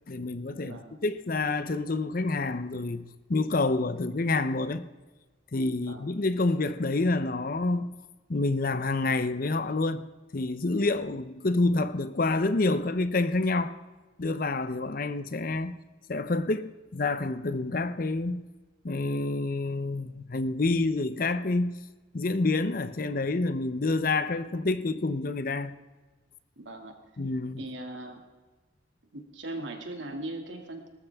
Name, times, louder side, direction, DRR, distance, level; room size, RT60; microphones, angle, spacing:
voice 1, 0.1-4.9 5.5-7.9 8.3-13.8 14.2-15.8 16.1-18.5 18.8-21.8 22.1-25.8 27.2-27.6, left 2 dB, 45° left, 0.7 m, -28 dB
voice 2, 0.7-1.0 5.9-6.0 26.6-27.0 27.6-28.2 29.1-30.9, right 1 dB, 70° right, 2.3 m, -39 dB
18.5 x 14.0 x 3.5 m
head